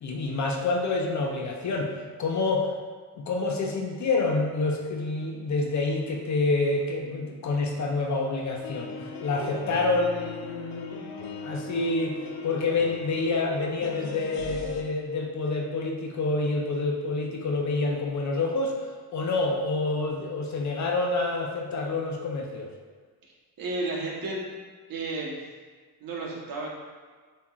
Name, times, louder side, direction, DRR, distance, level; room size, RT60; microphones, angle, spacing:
voice 1, 0.0-2.7 3.2-12.2 12.4-22.7, left 3 dB, 45° left, 1 dB, 0.6 m, -28 dB
sound 1, 8.6-14.8, left 4 dB, 80° left, 0.6 m, -38 dB
voice 2, 23.6-24.5 24.9-25.4 26.0-26.7, right 2 dB, 55° right, -3 dB, 1.2 m, -32 dB
7.3 x 2.9 x 2.4 m, 1.5 s
cardioid pair, 110°, 41 cm